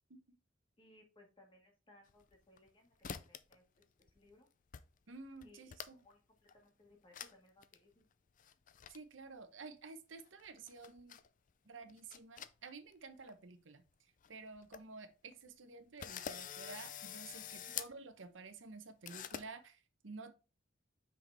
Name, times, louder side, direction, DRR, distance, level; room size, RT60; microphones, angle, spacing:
voice 1, 0.8-3.8 4.1-4.5 5.4-5.8 6.0-8.0 17.6-17.8, left 1 dB, 30° left, 1.6 m, -65 dB
sound 1, 2.1-2.7 3.0-3.6 3.8-4.3 4.7-4.8 5.1-6.1 6.5-6.6 7.1-7.3 7.6-7.8 8.4-9.0 10.2-11.3 11.8-12.9 13.2-13.3 13.9-14.0 14.2-14.3 14.6-14.8 15.3-15.4 16.0-17.9 19.1-19.5, left 8 dB, 45° left, 0.4 m, -46 dB
voice 2, 5.1-6.0 8.9-11.2 11.6-20.4, right 4 dB, 90° right, 0.9 m, -52 dB
5.8 x 5.0 x 3.4 m
head